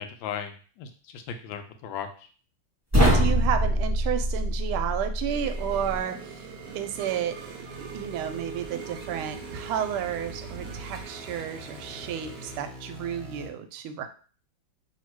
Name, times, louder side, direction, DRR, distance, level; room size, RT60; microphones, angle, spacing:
voice 1, 0.0-2.1, left 8 dB, 75° left, 6 dB, 1.3 m, -36 dB
sound 1, 2.9-6.0, equal, 10° right, 1.3 m, -24 dB
voice 2, 3.0-6.5 6.7-14.1, right 9 dB, 90° right, 8 dB, 1.4 m, -32 dB
sound 2, 5.3-12.6, right 6 dB, 70° right, 1.0 m, -43 dB
sound 3, 5.7-13.5, right 1 dB, 55° right, 0.7 m, -44 dB
3.2 x 2.8 x 4.4 m, 0.40 s
omnidirectional pair, 2.3 m